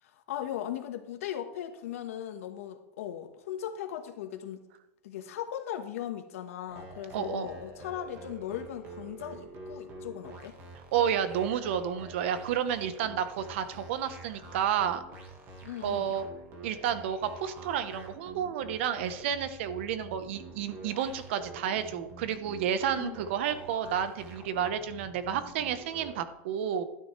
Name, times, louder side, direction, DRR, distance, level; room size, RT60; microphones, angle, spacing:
voice 1, 0.0-4.7 5.0-10.6 15.6-16.2 22.9-23.2, left 10 dB, 90° left, 6 dB, 1.4 m, -38 dB
sound 1, 6.7-26.3, right 2 dB, 30° right, 1.6 m, -47 dB
voice 2, 7.1-7.5 10.9-15.0 15.8-16.2 16.6-26.8, right 9 dB, 60° right, 11 dB, 1.0 m, -31 dB
12.5 x 9.8 x 3.3 m, 0.89 s
supercardioid pair, 175°, 7 cm